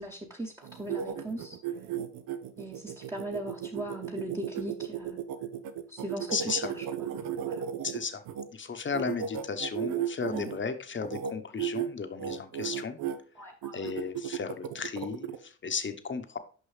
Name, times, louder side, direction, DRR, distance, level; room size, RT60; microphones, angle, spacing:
voice 1, 0.0-1.6 2.6-5.2 5.9-6.8 7.1-7.6 10.3-10.5 13.4-13.9, right 1 dB, 10° right, 0 dB, 0.9 m, -39 dB
sound 1, 0.6-8.4 8.9-10.6 11.0-11.3 11.6-11.9 12.2-13.2 13.6-15.4, right 9 dB, 80° right, 0.6 m, -35 dB
voice 2, 6.3-6.7 7.8-8.2 8.5-13.0 13.7-16.4, left 5 dB, 35° left, 9 dB, 0.9 m, -34 dB
6.5 x 5.3 x 3.3 m, 0.40 s
supercardioid pair, 55°, 34 cm